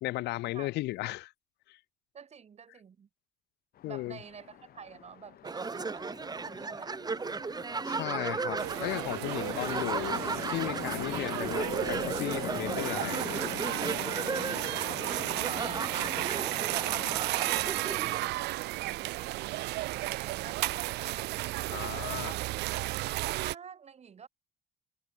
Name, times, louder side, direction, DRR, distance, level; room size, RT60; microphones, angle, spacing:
voice 1, 0.0-1.3 1.7-1.8 3.8-4.2 7.8-10.2 10.5-13.4 21.7-22.3, left 18 dB, 80° left, 1.6 m, -35 dB
voice 2, 2.1-3.1 3.8-7.3 14.9-22.4 23.3-24.3, right 7 dB, 40° right, 6.2 m, -49 dB
Chatter / Traffic noise roadway noise / Train, 3.8-17.2, left 12 dB, 65° left, 5.9 m, -43 dB
sound 1, 5.4-18.2, right 4 dB, 25° right, 4.2 m, -36 dB
sound 2, 8.6-23.5, right 19 dB, 90° right, 2.6 m, -34 dB
cardioid pair, 110°, 17 cm